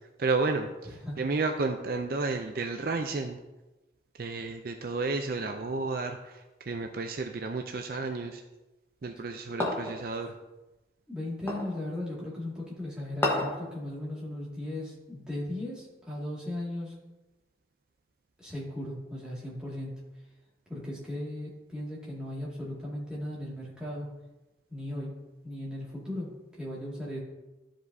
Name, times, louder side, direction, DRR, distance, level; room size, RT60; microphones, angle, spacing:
voice 1, 0.2-3.4 4.2-8.4 9.0-10.3, right 3 dB, 50° right, 5 dB, 0.4 m, -32 dB
sound 1, 9.6-10.0 11.5-11.7 13.2-13.6, left 1 dB, 10° left, 1.1 m, -29 dB
voice 2, 11.1-16.9 18.4-20.0 20.7-24.1 24.7-25.2 25.4-26.3 26.6-27.2, left 1 dB, 5° right, -7 dB, 2.0 m, -37 dB
13.0 x 5.1 x 2.7 m, 1.1 s
head